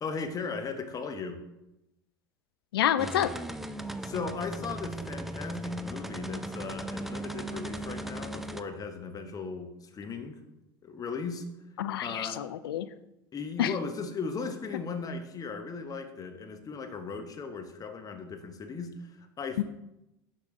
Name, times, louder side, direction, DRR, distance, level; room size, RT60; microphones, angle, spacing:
voice 1, 0.0-1.4 4.0-10.4 10.8-11.4 12.0-12.4 13.3-19.6, left 4 dB, 30° left, 6 dB, 1.0 m, -37 dB
voice 2, 2.7-3.3 11.8-12.9 13.6-13.7 19.6-19.7, left 11 dB, 80° left, 14 dB, 0.4 m, -28 dB
sound 1, 3.0-8.6, right 1 dB, ahead, 0.4 m, -37 dB
6.8 x 4.8 x 3.7 m, 0.91 s
hypercardioid pair, 80°, 12 cm